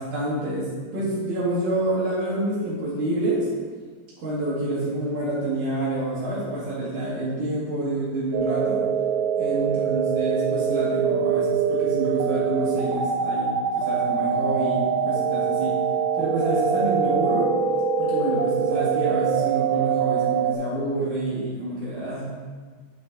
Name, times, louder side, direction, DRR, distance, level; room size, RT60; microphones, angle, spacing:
voice 1, 0.0-3.5 4.2-8.8 9.4-15.7 16.2-17.5 18.0-22.5, right 1 dB, 55° right, -11 dB, 3.2 m, -28 dB
sound 1, 8.3-20.5, right 7 dB, 85° right, 2.1 m, -24 dB
8.9 x 5.6 x 4.0 m, 1.5 s
omnidirectional pair, 4.9 m